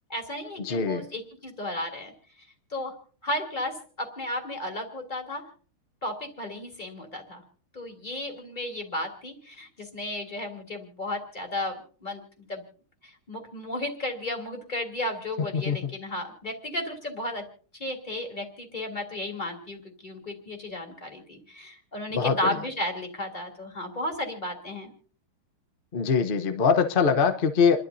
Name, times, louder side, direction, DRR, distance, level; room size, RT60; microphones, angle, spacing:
voice 1, 0.1-2.1 2.7-2.9 3.2-5.4 6.0-7.4 7.7-12.2 12.5-12.6 13.0-17.4 17.8-24.9, left 1 dB, 20° left, 2 dB, 2.9 m, -34 dB
voice 2, 0.6-1.1 15.5-15.8 22.1-22.6 25.9-27.8, left 6 dB, 45° left, 7 dB, 0.7 m, -23 dB
29.5 x 12.0 x 2.7 m, 0.41 s
omnidirectional pair, 2.3 m